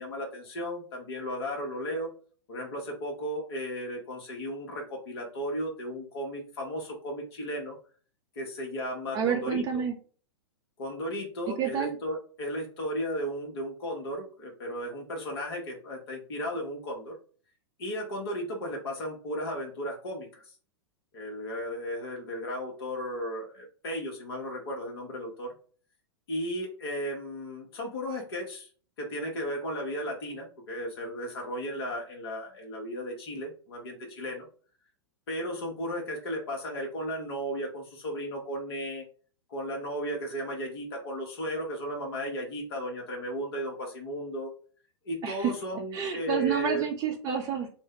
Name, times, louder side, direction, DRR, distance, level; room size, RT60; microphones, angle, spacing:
voice 1, 0.0-2.1 2.5-7.8 8.4-9.6 10.8-17.2 17.8-20.5 21.1-25.5 26.3-28.7 29.0-34.5 35.3-39.0 39.5-44.5 45.0-46.9, equal, 60° left, 0 dB, 1.1 m, -35 dB
voice 2, 9.1-9.9 11.5-12.0 45.2-45.5 45.9-47.7, right 7 dB, 25° right, 2 dB, 0.5 m, -29 dB
2.6 x 2.1 x 3.7 m, 0.42 s
hypercardioid pair, 105°, 15 cm